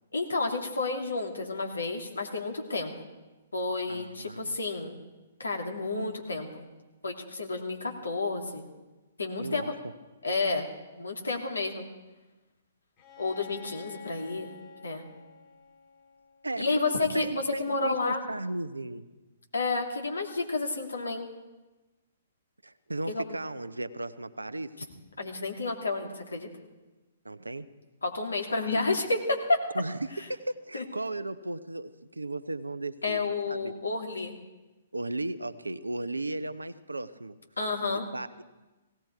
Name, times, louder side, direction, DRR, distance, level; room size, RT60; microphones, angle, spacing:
voice 1, 0.1-2.9 3.5-4.9 5.4-6.7 7.0-8.7 9.2-9.6 10.2-10.7 11.0-11.8 13.2-14.5 14.8-15.0 16.6-18.2 19.5-21.3 23.1-23.2 25.2-26.5 28.0-29.6 30.7-30.8 33.0-34.3 37.6-38.1, left 3 dB, 75° left, 2 dB, 2.6 m, -30 dB
voice 2, 3.9-4.6 9.4-9.9 16.4-19.0 22.6-24.7 27.2-27.7 28.7-28.9 29.7-33.7 34.9-37.4 38.1-38.4, right 2 dB, 80° right, 12 dB, 0.8 m, -36 dB
Bowed string instrument, 13.0-16.7, left 6 dB, 35° left, 3.4 m, -50 dB
17.5 x 17.5 x 4.7 m, 1.1 s
figure-of-eight pair, 120°, 0 cm